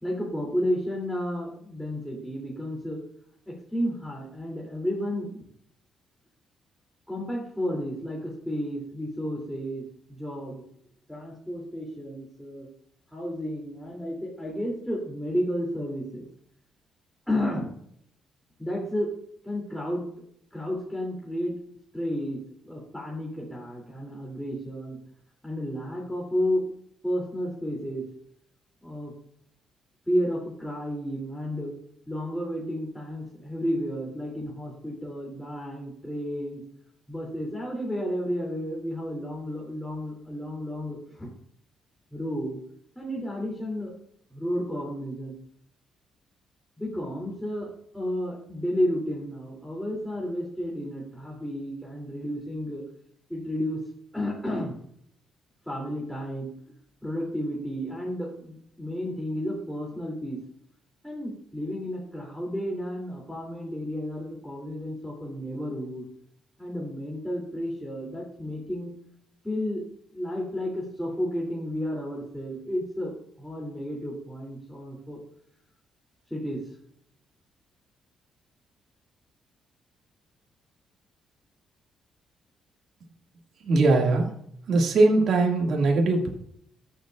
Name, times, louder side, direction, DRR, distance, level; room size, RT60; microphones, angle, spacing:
voice 1, 0.0-3.0 3.5-5.4 7.1-10.6 11.1-12.7 13.1-16.3 17.3-17.7 18.6-19.1 19.4-20.0 20.5-21.6 21.9-22.4 22.6-25.0 25.4-26.7 27.0-28.0 28.8-29.1 30.1-31.7 32.1-36.6 37.1-41.3 42.1-42.6 42.9-43.9 44.3-45.3 46.8-47.7 47.9-52.8 53.3-53.8 54.1-54.8 55.7-56.5 57.0-60.4 61.0-66.1 66.6-69.0 69.4-69.8 70.1-75.2 76.3-76.7, equal, 5° left, -4 dB, 2.9 m, -32 dB
voice 2, 83.6-84.3 84.7-86.3, right 2 dB, 65° right, 0 dB, 2.1 m, -21 dB
13.5 x 7.3 x 2.5 m, 0.66 s
cardioid pair, 90°, 0 cm